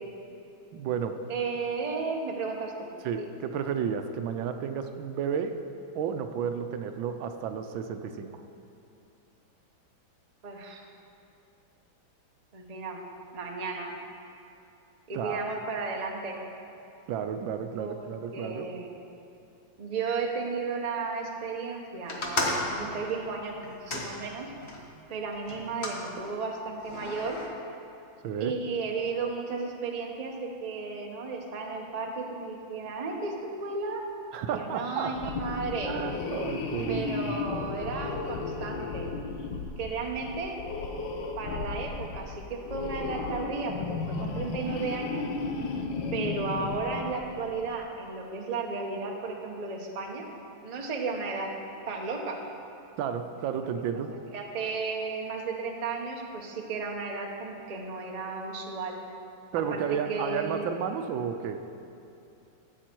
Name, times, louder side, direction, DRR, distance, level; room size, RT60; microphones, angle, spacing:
voice 1, 0.7-1.2 3.0-5.6 5.9-8.4 15.1-15.5 17.1-18.7 28.2-28.5 34.3-35.4 35.9-37.3 53.0-54.1 59.5-61.6, right 7 dB, 80° right, 7 dB, 1.4 m, -32 dB
voice 2, 1.3-2.9 3.2-3.3 10.4-10.8 12.5-13.0 13.3-13.9 15.1-16.4 17.8-17.9 18.3-18.9 19.8-24.5 25.1-27.4 28.4-34.0 34.5-36.0 36.9-39.1 39.8-40.6 41.4-43.9 44.2-45.3 46.1-50.3 50.6-51.5 51.9-52.4 54.3-59.0 59.7-59.8 60.1-60.7, right 4 dB, 30° right, 1 dB, 0.7 m, -34 dB
sound 1, 22.1-24.8 25.5-26.0 26.8-27.5, left 2 dB, 40° left, 1.2 m, -33 dB
sound 2, 35.1-47.6, left 4 dB, 75° left, 1.6 m, -34 dB
13.5 x 8.4 x 4.5 m, 2.8 s
omnidirectional pair, 2.1 m